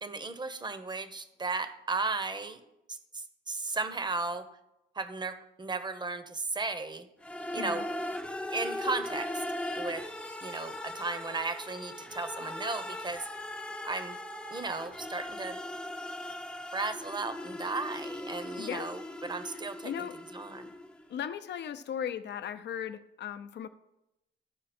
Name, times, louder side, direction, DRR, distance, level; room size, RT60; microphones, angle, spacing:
voice 1, 0.0-2.6 2.9-4.4 5.0-7.1 7.5-7.8 8.5-9.4 9.8-10.0 10.4-13.3 13.8-14.2 14.5-15.6 16.7-20.1 20.3-20.7, right 3 dB, 20° right, 11 dB, 0.8 m, -35 dB
sound 1, 7.2-21.1, left 1 dB, 5° left, 0.6 m, -39 dB
voice 2, 18.6-18.9 19.8-20.2 21.1-23.7, left 9 dB, 60° left, 11 dB, 0.7 m, -37 dB
13.0 x 4.8 x 4.3 m, 0.89 s
cardioid pair, 90°, 20 cm